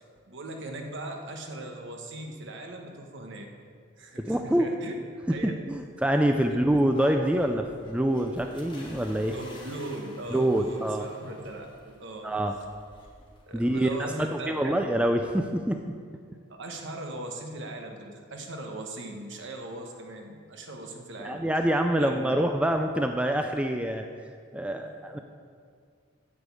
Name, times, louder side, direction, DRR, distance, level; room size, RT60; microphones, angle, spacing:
voice 1, 0.3-3.4 4.0-5.0 5.3-5.6 6.5-6.6 9.2-12.3 13.5-14.8 16.5-21.4 22.0-22.4 24.8-24.9, right 1 dB, 60° right, 2 dB, 1.2 m, -39 dB
voice 2, 4.2-4.7 5.4-9.3 10.3-11.1 12.2-12.6 13.5-13.9 14.2-15.8 21.2-24.1 24.5-25.2, right 1 dB, 5° right, 5 dB, 0.4 m, -26 dB
sound 1, 6.7-14.9, equal, 25° left, 1.7 m, -49 dB
9.8 x 5.3 x 8.3 m, 2.1 s
head